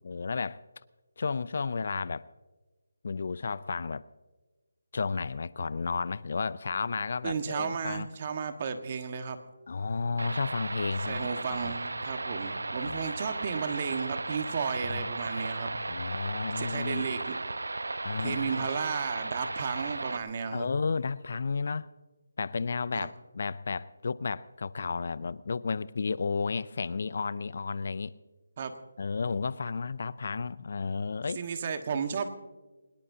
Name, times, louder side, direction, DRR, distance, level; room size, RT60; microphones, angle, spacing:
voice 1, 0.0-0.6 1.2-2.3 3.0-4.1 4.9-8.1 9.7-11.7 12.8-13.1 14.9-15.1 15.9-17.1 18.0-18.7 20.5-21.9 22.4-28.1 29.0-31.4, left 4 dB, 55° left, 0.5 m, -32 dB
voice 2, 7.2-9.4 11.1-15.8 16.6-17.4 18.2-20.7 22.9-23.1 28.6-28.7 31.4-32.3, right 6 dB, 35° right, 1.4 m, -33 dB
sound 1, 10.2-20.2, right 2 dB, 90° right, 0.8 m, -35 dB
23.0 x 20.5 x 2.8 m
figure-of-eight pair, 165°, 0 cm